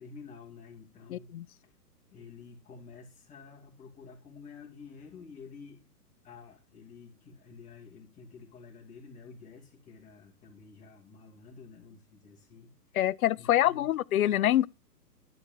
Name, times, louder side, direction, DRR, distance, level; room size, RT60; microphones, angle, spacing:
voice 1, 0.0-1.3 1.6-1.8 2.1-5.8 6.2-12.7 13.4-13.9, left 5 dB, 15° left, 2.5 m, -50 dB
voice 2, 1.1-1.4 13.0-14.7, left 13 dB, 60° left, 0.5 m, -25 dB
12.0 x 4.9 x 7.8 m
hypercardioid pair, 140°, 48 cm